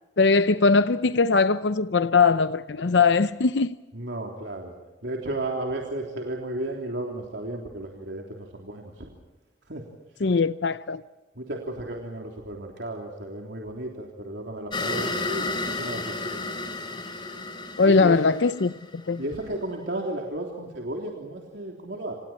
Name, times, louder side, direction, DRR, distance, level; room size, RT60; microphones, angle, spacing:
voice 1, 0.2-3.8 10.2-11.0 17.8-18.7 19.1-19.2, left 4 dB, 80° left, 0.7 m, -20 dB
voice 2, 3.9-4.7 5.0-9.1 9.7-9.8 10.2-10.3 11.3-16.4 17.8-18.2 19.2-22.1, right 1 dB, 85° right, 3.3 m, -34 dB
sound 1, 14.7-19.3, left 3 dB, 25° left, 3.9 m, -32 dB
29.5 x 27.0 x 4.4 m
head